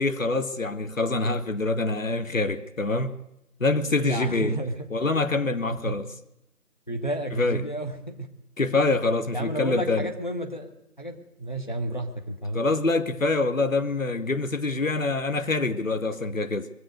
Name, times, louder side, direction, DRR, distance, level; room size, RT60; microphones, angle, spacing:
voice 1, 0.0-3.1 3.6-4.6 4.9-6.1 7.3-7.6 8.6-10.1 12.5-16.7, left 3 dB, 55° left, 1.0 m, -25 dB
voice 2, 3.9-4.9 5.7-5.9 6.9-8.3 9.3-10.7 11.0-12.6, right 1 dB, 30° left, 1.0 m, -31 dB
22.0 x 7.8 x 6.4 m
figure-of-eight pair, 175°, 47 cm